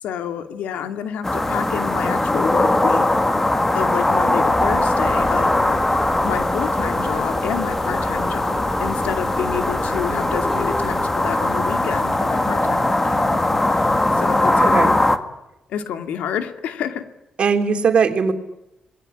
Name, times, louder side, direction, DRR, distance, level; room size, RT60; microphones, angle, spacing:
voice 1, 0.0-3.1 3.7-5.8 6.2-13.4 13.7-15.0 15.7-17.0, left 8 dB, 90° left, 8 dB, 2.5 m, -29 dB
sound 1, 1.2-15.2, left 2 dB, 15° left, 1.9 m, -20 dB
sound 2, 4.4-11.0, equal, ahead, 5.0 m, -33 dB
voice 2, 14.6-15.0 17.4-18.3, right 6 dB, 50° right, 7 dB, 3.3 m, -19 dB
27.5 x 21.0 x 10.0 m, 0.91 s
cardioid pair, 105°, 2 cm